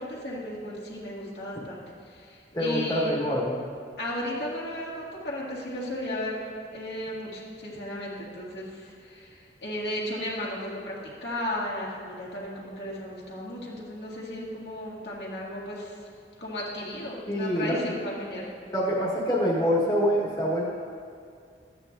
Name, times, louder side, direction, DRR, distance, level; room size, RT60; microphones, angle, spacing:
voice 1, 0.0-3.1 4.0-16.0 16.4-18.5, left 1 dB, 70° left, -6 dB, 2.0 m, -35 dB
voice 2, 2.5-3.6 17.3-17.9 18.7-20.7, equal, 20° left, -6 dB, 1.4 m, -25 dB
13.5 x 8.9 x 2.6 m, 2.2 s
head